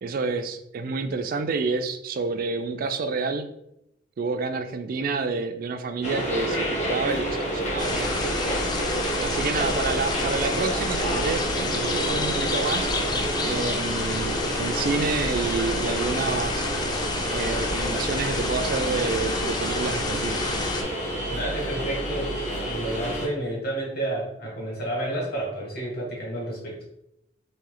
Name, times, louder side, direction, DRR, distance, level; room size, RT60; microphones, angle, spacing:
voice 1, 0.0-3.5 4.2-8.1 9.2-12.9 13.4-16.7 17.3-20.4, right 4 dB, 50° right, 8 dB, 0.3 m, -29 dB
sound 1, 6.0-23.3, right 1 dB, 40° left, 0.9 m, -29 dB
sound 2, 7.8-20.8, left 3 dB, 25° left, 0.4 m, -29 dB
voice 2, 21.3-26.8, right 1 dB, 55° left, -2 dB, 1.5 m, -30 dB
3.1 x 2.8 x 3.7 m, 0.80 s
head